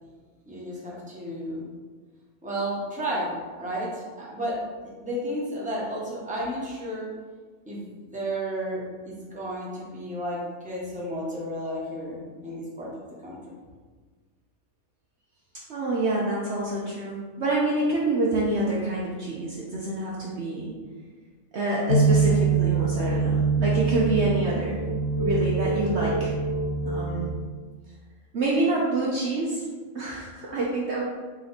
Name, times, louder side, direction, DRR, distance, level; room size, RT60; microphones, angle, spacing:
voice 1, 0.5-1.6 2.4-7.1 7.7-13.4, equal, 5° right, -6 dB, 0.9 m, -32 dB
voice 2, 15.7-20.7 21.5-24.8 25.2-26.3 26.8-27.3 28.3-29.6 29.9-31.0, right 2 dB, 60° right, -4 dB, 0.8 m, -27 dB
sound 1, 21.9-27.3, right 4 dB, 85° left, 1.0 m, -24 dB
4.2 x 3.0 x 3.9 m, 1.5 s
omnidirectional pair, 1.5 m